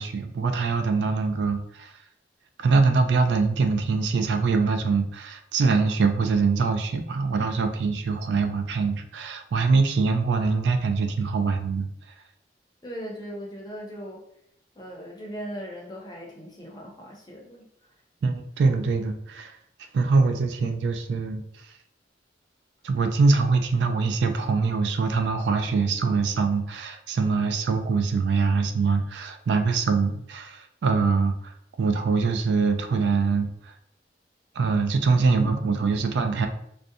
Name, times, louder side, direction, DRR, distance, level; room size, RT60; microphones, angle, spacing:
voice 1, 0.0-2.0 2.6-11.9 18.2-19.5 19.9-21.7 22.8-33.7 34.5-36.5, right 4 dB, 75° right, 7 dB, 0.3 m, -23 dB
voice 2, 12.8-14.2 14.7-17.7, equal, 25° left, -1 dB, 0.6 m, -38 dB
2.5 x 2.1 x 2.6 m, 0.72 s
head